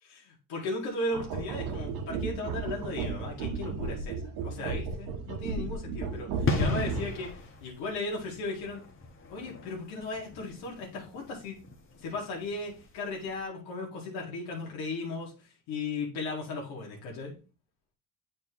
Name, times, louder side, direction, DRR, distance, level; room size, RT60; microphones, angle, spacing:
voice 1, 0.0-8.8 9.3-11.6 12.0-15.3 15.7-17.3, left 2 dB, 80° left, -1 dB, 2.0 m, -36 dB
sound 1, 1.1-7.3, right 4 dB, 70° right, 1.2 m, -34 dB
sound 2, 6.5-13.0 13.2-13.4, left 3 dB, 35° left, 1.2 m, -35 dB
7.7 x 4.4 x 3.0 m, 0.34 s
cardioid pair, 100°, 37 cm